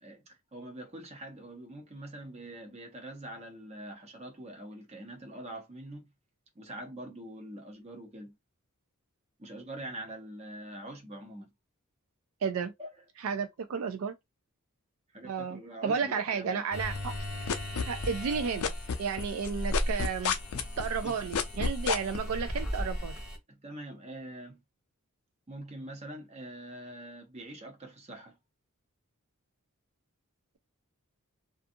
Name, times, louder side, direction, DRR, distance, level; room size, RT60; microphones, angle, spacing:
voice 1, 0.0-6.1 6.5-8.3 9.4-11.5 12.8-12.9 15.1-16.7 21.0-21.2 23.5-24.6 25.5-28.4, right 1 dB, 30° right, 0.8 m, -44 dB
voice 2, 12.4-12.7 13.2-14.1 15.2-17.1 17.9-18.7 19.0-20.3 20.8-23.2, right 6 dB, 75° right, 0.4 m, -32 dB
sound 1, 16.7-23.4, equal, 5° right, 1.2 m, -36 dB
sound 2, 16.9-18.3 18.6-22.2, left 6 dB, 80° left, 0.5 m, -30 dB
2.5 x 2.3 x 2.6 m
head